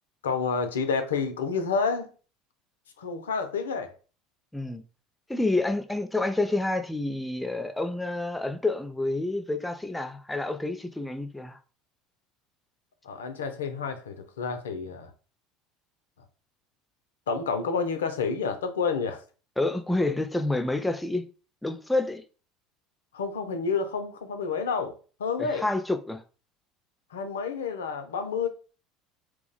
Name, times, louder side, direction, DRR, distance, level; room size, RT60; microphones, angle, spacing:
voice 1, 0.2-2.1 3.0-3.9 13.0-15.1 17.3-19.2 23.1-25.7 27.1-28.5, left 5 dB, 85° left, 0.4 m, -29 dB
voice 2, 4.5-4.8 5.3-11.6 19.6-21.2 21.6-22.2 25.4-26.2, left 2 dB, 10° left, 0.4 m, -28 dB
2.3 x 2.1 x 3.8 m
hypercardioid pair, 75°, 0 cm